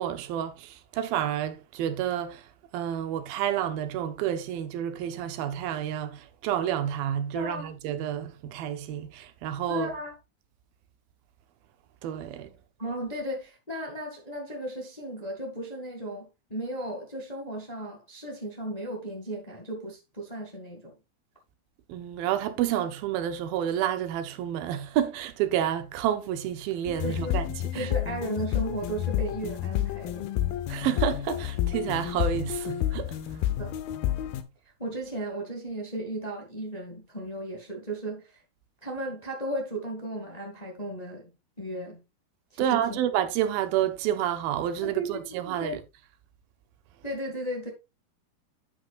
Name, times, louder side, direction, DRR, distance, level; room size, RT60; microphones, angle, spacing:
voice 1, 0.0-2.5 2.7-9.9 12.0-12.5 21.9-27.5 27.7-27.9 30.7-33.2 42.6-45.8, right 10 dB, 80° right, 2.6 m, -29 dB
voice 2, 7.3-7.7 9.7-10.1 12.8-20.9 27.0-27.4 27.7-30.3 33.5-33.8 34.8-38.4 38.8-41.3 41.6-42.0 42.5-43.0 44.8-45.8 47.0-47.7, right 1 dB, 15° left, 1.3 m, -35 dB
sound 1, 26.9-34.4, left 12 dB, 85° left, 2.7 m, -30 dB
9.8 x 8.2 x 2.5 m
omnidirectional pair, 4.2 m